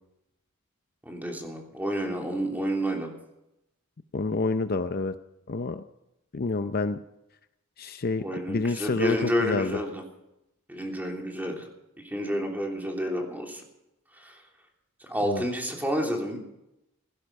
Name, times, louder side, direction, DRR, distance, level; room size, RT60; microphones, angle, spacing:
voice 1, 1.0-3.1 8.2-10.0 10.7-11.7 12.0-13.6 14.1-14.4 15.0-16.4, equal, 10° right, 1 dB, 3.1 m, -30 dB
voice 2, 4.1-5.1 5.5-5.8 6.3-7.0 7.8-9.8 15.2-15.4, left 3 dB, 45° left, 10 dB, 0.6 m, -28 dB
16.5 x 15.5 x 5.4 m, 0.87 s
head